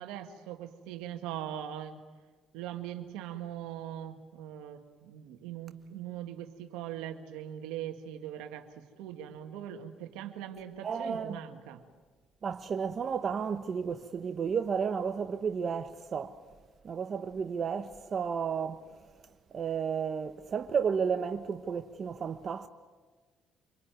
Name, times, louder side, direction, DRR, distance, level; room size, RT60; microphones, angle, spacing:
voice 1, 0.0-2.0 2.5-8.7 9.0-11.8, right 11 dB, 90° right, 2.0 m, -41 dB
voice 2, 10.8-11.4 12.4-16.4 16.8-18.8 19.5-22.7, right 6 dB, 50° right, 1.1 m, -32 dB
26.0 x 23.5 x 9.4 m
supercardioid pair, 70°, 0 cm